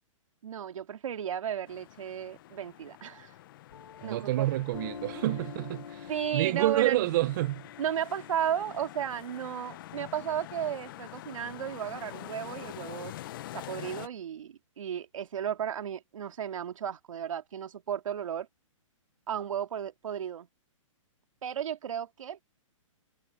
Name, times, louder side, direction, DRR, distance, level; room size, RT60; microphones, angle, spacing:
voice 1, 0.4-3.3 4.0-4.5 5.1-5.2 6.1-7.0 7.8-13.1 13.5-18.5 19.3-20.5 21.4-22.4, right 9 dB, 75° right, 2.3 m, -34 dB
sound 1, 1.7-14.1, left 15 dB, 40° left, 0.8 m, -46 dB
Piano, 3.7-10.8, left 7 dB, 85° left, 5.3 m, -47 dB
voice 2, 4.0-7.6, right 16 dB, 35° right, 0.6 m, -28 dB
hypercardioid pair, 160°, 17 cm